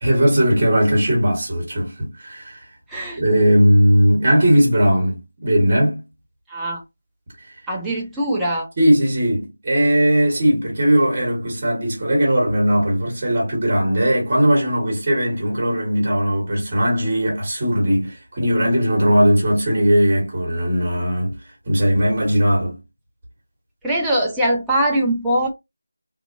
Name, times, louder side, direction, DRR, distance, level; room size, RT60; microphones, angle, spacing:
voice 1, 0.0-2.6 3.2-6.0 8.8-21.4 21.7-22.8, equal, 25° right, 1.3 m, -18 dB
voice 2, 2.9-3.2 6.5-6.8 7.7-8.7 23.8-25.5, right 1 dB, 5° right, 0.5 m, -21 dB
2.7 x 2.4 x 2.5 m
figure-of-eight pair, 170°, 0 cm